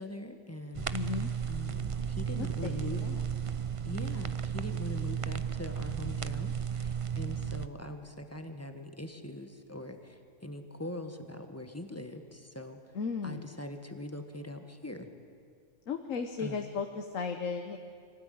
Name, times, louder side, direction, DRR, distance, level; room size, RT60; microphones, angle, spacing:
voice 1, 0.0-0.9 1.5-3.0 3.8-12.8 13.2-15.1 16.4-16.6, left 1 dB, 10° left, 6 dB, 1.5 m, -42 dB
sound 1, 0.7-7.7, right 7 dB, 40° right, 0.5 m, -34 dB
voice 2, 0.9-1.3 2.3-2.7 3.0-3.2 12.9-13.5 15.9-17.8, left 5 dB, 80° left, 5 dB, 1.5 m, -35 dB
24.0 x 17.0 x 9.5 m, 2.2 s
omnidirectional pair, 1.3 m